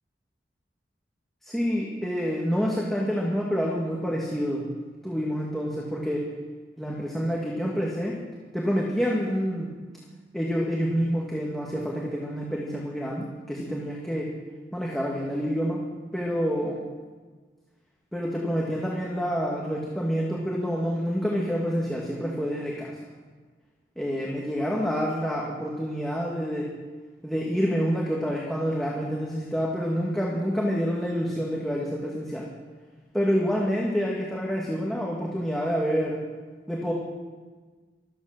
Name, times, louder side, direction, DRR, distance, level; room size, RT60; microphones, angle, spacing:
voice 1, 1.4-4.6 5.0-6.3 6.8-8.2 8.5-9.7 10.3-14.3 14.7-15.8 16.1-16.8 18.1-23.0 24.0-26.7 27.2-32.5 33.1-36.2 36.7-36.9, equal, ahead, -4 dB, 1.9 m, -27 dB
24.0 x 8.9 x 6.6 m, 1.4 s
head